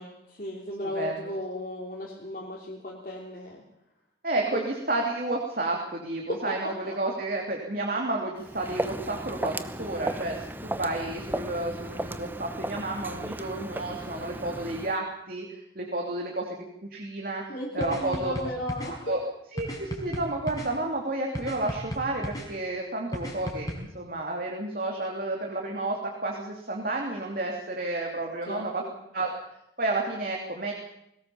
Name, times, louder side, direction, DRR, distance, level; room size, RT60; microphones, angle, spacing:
voice 1, 0.0-3.6 4.5-4.6 6.3-6.9 17.5-19.2 28.5-28.9, equal, 45° left, -3 dB, 3.4 m, -35 dB
voice 2, 0.9-1.3 4.2-17.4 17.7-18.3 19.1-19.2 19.5-28.8 29.1-29.3 29.8-30.7, right 2 dB, 50° right, 0 dB, 3.2 m, -31 dB
Walk footsteps, 8.4-15.0, right 1 dB, 10° right, 0.9 m, -35 dB
sound 1, 17.8-18.9 19.6-20.7 21.4-22.5 23.1-23.8, equal, 20° left, 4.9 m, -34 dB
21.5 x 19.0 x 7.3 m, 0.79 s
head